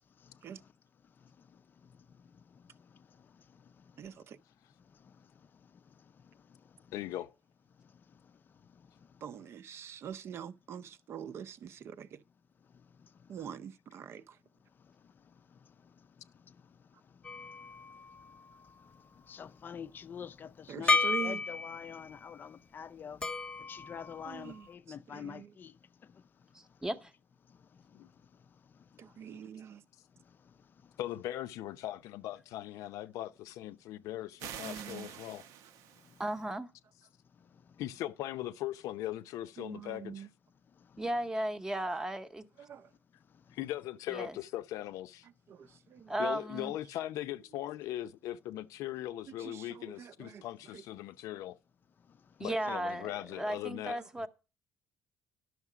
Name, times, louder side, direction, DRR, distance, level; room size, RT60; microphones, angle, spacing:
voice 1, 4.0-4.4 9.2-12.2 13.3-14.4 20.7-21.4 24.2-25.5 29.0-29.8 34.6-35.1 39.6-40.3 42.6-42.9 45.5-46.1 49.3-50.4 50.7-50.8 54.0-54.1, right 7 dB, 50° right, 0.6 m, -45 dB
voice 2, 6.9-7.3 27.9-28.1 31.0-35.4 37.8-40.3 43.5-45.3 46.2-51.6 52.4-54.3, left 14 dB, 85° left, 0.6 m, -39 dB
sound 1, 17.2-18.9 20.9-22.1 23.2-24.7, left 3 dB, 20° left, 0.9 m, -34 dB
voice 3, 19.3-23.2 23.7-25.7, left 7 dB, 35° left, 0.5 m, -45 dB
voice 4, 26.5-27.1 36.2-36.7 41.0-42.4 44.1-44.4 46.1-46.7 52.4-54.3, right 1 dB, 10° right, 0.8 m, -35 dB
sound 2, 34.4-36.4, right 10 dB, 90° right, 0.8 m, -46 dB
11.0 x 6.5 x 4.9 m
cardioid pair, 130°, 5 cm